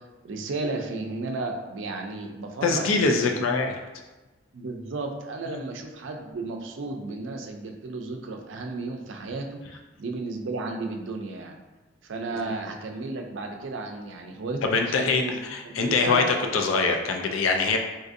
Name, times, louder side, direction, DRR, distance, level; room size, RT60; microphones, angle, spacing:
voice 1, 0.0-3.7 4.5-9.6 10.0-11.6 12.0-16.3, right 3 dB, 70° right, 3 dB, 0.4 m, -33 dB
voice 2, 2.6-3.7 14.6-17.8, left 4 dB, 85° left, 3 dB, 0.4 m, -23 dB
3.9 x 2.5 x 2.5 m, 1.1 s
head